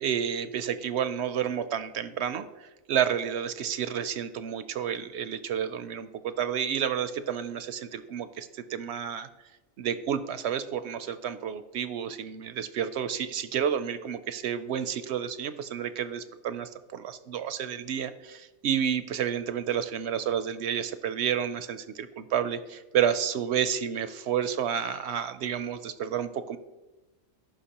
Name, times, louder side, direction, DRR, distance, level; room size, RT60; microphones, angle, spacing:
voice 1, 0.0-9.3 9.8-26.6, right 8 dB, 65° right, 12 dB, 0.7 m, -30 dB
14.5 x 5.9 x 2.9 m, 1.1 s
omnidirectional pair, 1.4 m